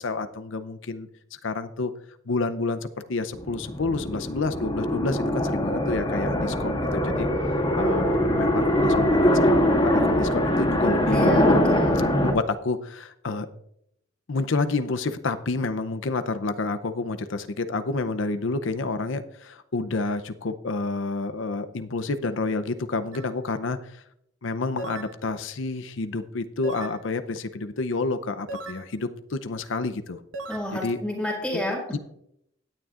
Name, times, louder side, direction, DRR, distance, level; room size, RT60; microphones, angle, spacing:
voice 1, 0.0-1.9 2.3-7.3 7.8-11.3 12.2-13.5 14.3-24.0 24.4-30.2 30.7-31.0 31.5-31.6 31.9-32.0, left 3 dB, 70° left, 10 dB, 0.7 m, -29 dB
sound 1, 3.4-12.3, left 1 dB, 25° left, 2.3 m, -22 dB
voice 2, 11.1-12.1 30.5-31.8, left 1 dB, 5° left, -4 dB, 2.0 m, -30 dB
sound 2, 23.1-23.3 24.8-25.2 26.6-27.0 28.5-28.9 30.3-30.6, right 3 dB, 75° right, 1.2 m, -36 dB
16.5 x 9.8 x 2.5 m, 0.75 s
head